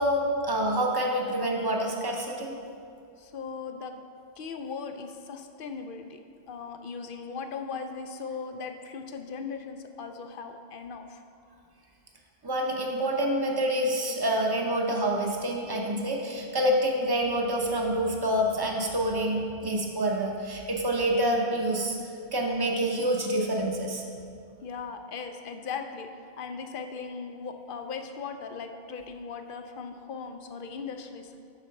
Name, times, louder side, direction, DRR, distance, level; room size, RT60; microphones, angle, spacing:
voice 1, 0.0-2.5 12.4-22.0 22.3-24.0, right 1 dB, 25° right, 0 dB, 0.8 m, -27 dB
voice 2, 3.2-3.9 4.4-6.2 6.5-11.2 24.6-26.1 26.4-31.4, left 5 dB, 60° left, 6 dB, 0.7 m, -38 dB
8.2 x 4.4 x 5.8 m, 2.5 s
omnidirectional pair, 1.1 m